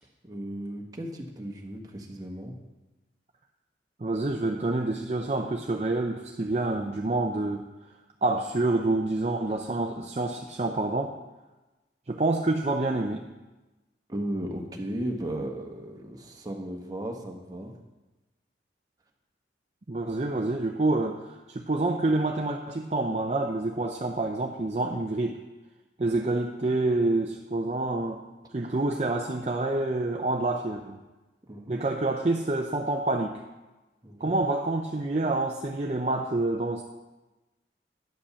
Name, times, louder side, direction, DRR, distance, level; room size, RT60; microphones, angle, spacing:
voice 1, 0.2-2.5 14.1-17.7 31.5-31.8 34.0-34.3, right 1 dB, 20° right, 1 dB, 1.2 m, -35 dB
voice 2, 4.0-7.7 8.2-11.1 12.1-13.2 19.9-25.4 26.0-28.2 28.5-31.0 31.7-33.4 34.2-36.8, right 2 dB, 35° right, 2 dB, 0.5 m, -27 dB
10.0 x 5.2 x 6.9 m, 1.1 s
head